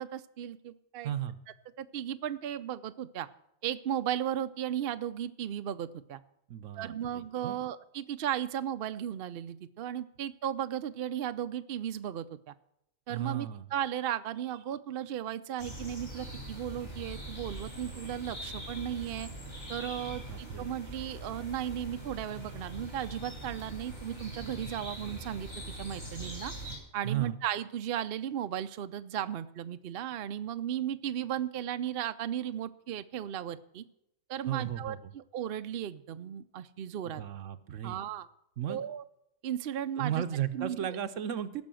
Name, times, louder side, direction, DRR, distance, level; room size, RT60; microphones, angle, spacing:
voice 1, 0.0-1.1 1.8-3.3 3.6-6.2 6.8-12.5 13.1-19.3 19.7-26.5 26.9-33.8 34.3-37.2 37.8-38.3 38.7-39.0 39.4-40.2 40.5-40.8, right 10 dB, 55° right, 10 dB, 0.7 m, -35 dB
voice 2, 1.0-1.4 6.5-7.6 13.1-13.7 20.1-20.7 27.0-27.4 34.4-35.1 37.0-38.0 38.6-38.8 40.0-41.6, right 10 dB, 70° right, 11 dB, 1.1 m, -35 dB
sound 1, 15.6-26.8, right 1 dB, 50° left, 5.4 m, -42 dB
16.5 x 6.2 x 7.6 m, 0.78 s
omnidirectional pair, 1.4 m